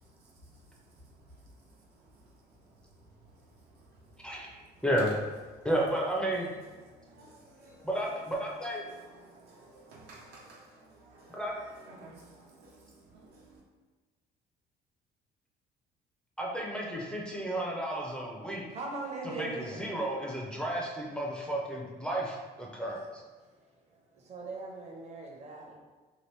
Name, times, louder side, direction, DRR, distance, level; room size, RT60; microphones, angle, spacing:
voice 1, 0.0-2.2 2.7-2.8 3.2-4.1 4.4-4.5 5.5-5.7 6.8-7.9 8.5-13.6, right 2 dB, 75° right, -3 dB, 0.8 m, -55 dB
voice 2, 4.8-5.2 5.6-6.5 7.8-8.8 11.3-11.5 16.4-18.7 19.2-23.2, right 1 dB, 5° left, -3 dB, 0.5 m, -32 dB
voice 3, 18.7-19.9 23.9-25.8, right 3 dB, 40° right, -1 dB, 0.8 m, -40 dB
2.9 x 2.5 x 3.3 m, 1.3 s
cardioid pair, 110°, 17 cm